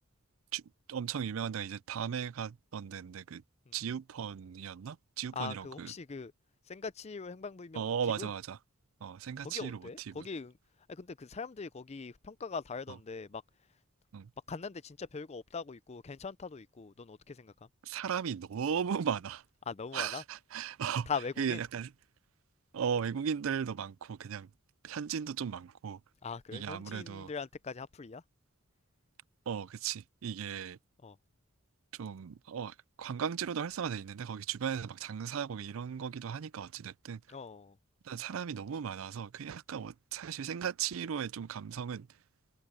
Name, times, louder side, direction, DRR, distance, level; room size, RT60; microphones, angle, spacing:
voice 1, 0.9-3.4 3.7-5.9 7.7-8.6 9.0-9.8 10.1-10.2 14.1-14.3 17.8-19.4 19.9-21.1 21.4-21.9 22.7-24.5 24.8-26.0 26.5-27.3 29.5-30.8 31.9-37.2 38.0-42.1, right 7 dB, 70° right, 0.4 m, -36 dB
voice 2, 5.3-6.3 6.7-8.3 9.4-10.5 10.9-13.4 14.5-17.7 19.7-20.2 21.1-21.6 26.2-28.2 31.0-31.2 37.3-37.8, left 5 dB, 30° left, 0.5 m, -41 dB
head